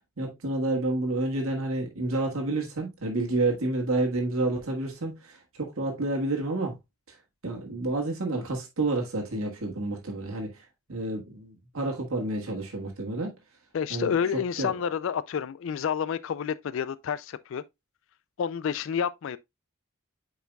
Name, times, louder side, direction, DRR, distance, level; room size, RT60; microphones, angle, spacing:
voice 1, 0.2-6.8 7.1-7.2 7.4-13.3 13.9-14.7, right 2 dB, 70° right, 1.5 m, -29 dB
voice 2, 13.7-17.6 18.4-19.4, left 7 dB, 60° left, 0.3 m, -29 dB
9.0 x 4.8 x 2.2 m
head